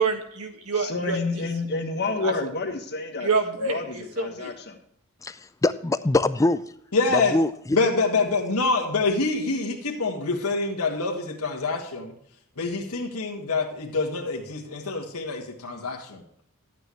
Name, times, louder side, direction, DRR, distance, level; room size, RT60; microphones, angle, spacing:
voice 1, 0.0-1.4 2.1-2.3 3.2-4.5, right 4 dB, 70° right, 5 dB, 1.6 m, -27 dB
voice 2, 0.8-3.3 3.6-4.8, left 3 dB, 50° left, 3 dB, 1.6 m, -29 dB
voice 3, 5.2-6.6 7.1-7.8, left 2 dB, 15° left, 12 dB, 0.4 m, -23 dB
voice 4, 6.9-7.3 7.7-12.1 12.6-16.2, left 3 dB, 80° left, -1 dB, 1.8 m, -26 dB
11.5 x 9.3 x 3.1 m, 0.68 s
head